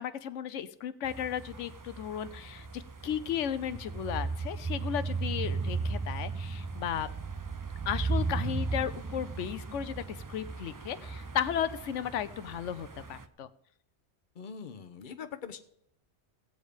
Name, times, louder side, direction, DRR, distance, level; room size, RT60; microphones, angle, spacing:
voice 1, 0.0-7.1 7.9-13.5, left 9 dB, 90° left, 13 dB, 1.0 m, -35 dB
sound 1, 1.0-13.3, right 4 dB, 30° right, 0.3 m, -36 dB
voice 2, 14.3-15.6, left 6 dB, 45° left, 8 dB, 1.0 m, -42 dB
18.0 x 7.3 x 5.0 m, 0.71 s
omnidirectional pair, 1.2 m